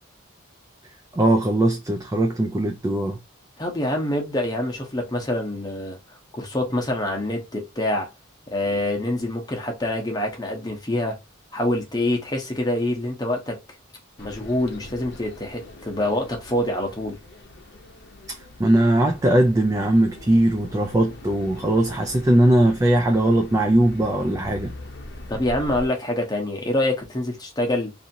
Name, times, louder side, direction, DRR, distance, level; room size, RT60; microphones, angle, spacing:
voice 1, 1.1-3.2 18.3-24.7, right 1 dB, 15° right, 0.3 m, -20 dB
voice 2, 3.6-6.0 6.3-8.1 8.5-11.2 11.5-13.6 14.2-17.2 25.3-27.9, left 1 dB, 20° left, 0.8 m, -26 dB
sound 1, 14.2-25.9, left 2 dB, 55° left, 0.7 m, -42 dB
2.7 x 2.6 x 2.6 m
head